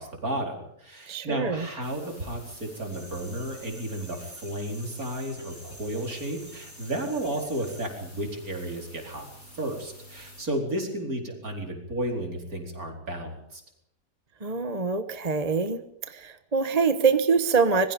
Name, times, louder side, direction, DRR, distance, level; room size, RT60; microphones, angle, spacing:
voice 1, 0.0-9.3 9.5-13.6, right 1 dB, 60° right, 2 dB, 5.0 m, -33 dB
voice 2, 1.1-1.7 14.4-15.8 16.1-17.9, right 5 dB, 25° right, 9 dB, 1.2 m, -24 dB
sound 1, 1.8-10.4, equal, 60° left, 8.6 m, -49 dB
sound 2, 2.9-7.9, right 1 dB, 10° right, 3.6 m, -49 dB
25.5 x 21.5 x 5.3 m, 0.78 s
omnidirectional pair, 1.7 m